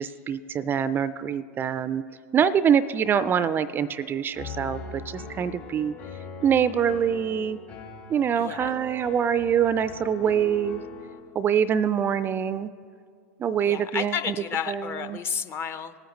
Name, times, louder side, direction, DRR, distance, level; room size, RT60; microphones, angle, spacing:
voice 1, 0.0-2.0 2.3-5.9 6.4-7.6 8.1-10.8 11.3-12.7 13.4-14.4 14.7-15.2, right 8 dB, 25° right, 16 dB, 0.3 m, -24 dB
Piano, 4.3-11.2, left 4 dB, 50° left, 2.5 m, -41 dB
voice 2, 8.4-8.7 13.6-16.0, left 7 dB, 30° left, 11 dB, 0.6 m, -31 dB
19.0 x 9.1 x 3.1 m, 2.3 s
hypercardioid pair, 90°, 8 cm